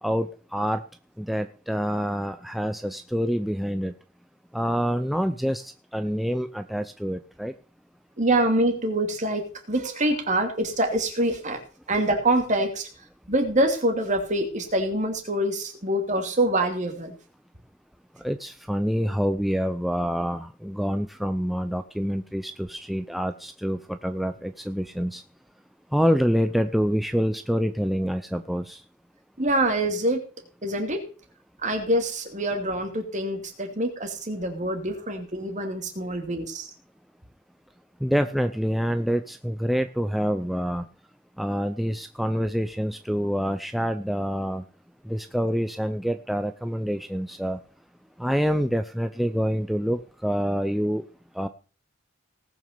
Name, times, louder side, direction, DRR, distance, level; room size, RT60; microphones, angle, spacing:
voice 1, 0.0-0.8 1.2-3.9 4.5-7.5 18.2-25.2 25.9-28.8 38.0-40.9 41.4-44.6 45.0-47.6 48.2-51.1 51.3-51.5, equal, ahead, 8 dB, 0.5 m, -26 dB
voice 2, 8.2-11.6 11.9-12.9 13.3-17.2 29.4-30.2 30.6-31.1 31.6-36.7, right 1 dB, 40° right, 5 dB, 2.8 m, -25 dB
18.5 x 6.3 x 6.8 m, 0.39 s
head